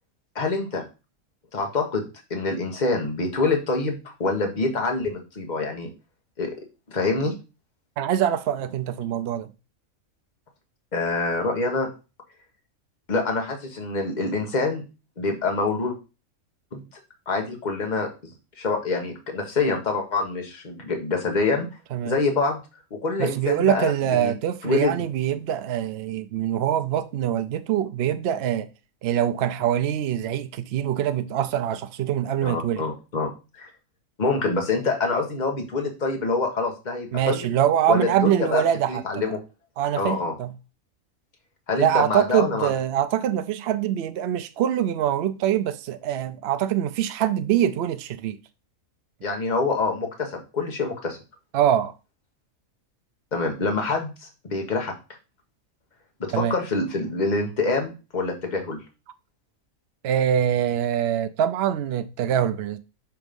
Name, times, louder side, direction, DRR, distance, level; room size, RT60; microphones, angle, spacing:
voice 1, 0.3-0.8 1.5-2.0 2.3-5.9 6.4-6.5 6.9-7.3 10.9-11.9 13.1-14.8 15.2-16.0 16.7-16.8 17.3-21.7 22.0-22.6 22.9-24.3 24.6-25.0 32.4-33.7 34.2-37.5 37.9-38.6 38.9-39.4 40.0-40.3 41.7-42.7 49.2-51.2 53.3-54.9 56.2-58.8, left 3 dB, 35° left, 1.4 m, -26 dB
voice 2, 8.0-9.5 21.9-22.2 23.2-28.7 29.0-32.9 37.1-39.3 39.8-40.5 41.8-48.4 51.5-51.9 56.3-56.6 60.0-62.8, right 10 dB, 65° right, 0.6 m, -24 dB
5.9 x 3.5 x 5.2 m
omnidirectional pair, 1.5 m